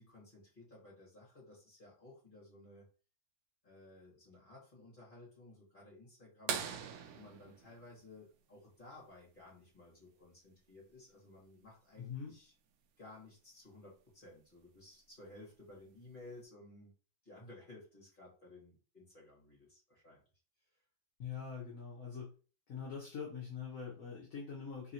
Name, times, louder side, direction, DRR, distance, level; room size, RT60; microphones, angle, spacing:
voice 1, 0.0-2.9 3.6-6.6 7.1-12.5 13.0-16.9 17.2-20.2, left 2 dB, 30° left, -4 dB, 2.3 m, -56 dB
sound 1, 6.5-8.9 10.9-11.0 13.2-13.3 15.0-15.3 16.1-16.2, right 7 dB, 70° right, 1.0 m, -41 dB
voice 2, 12.0-12.3 21.2-22.3 22.7-24.9, left 6 dB, 60° left, -3 dB, 1.3 m, -43 dB
3.7 x 3.7 x 2.8 m, 0.37 s
omnidirectional pair, 1.7 m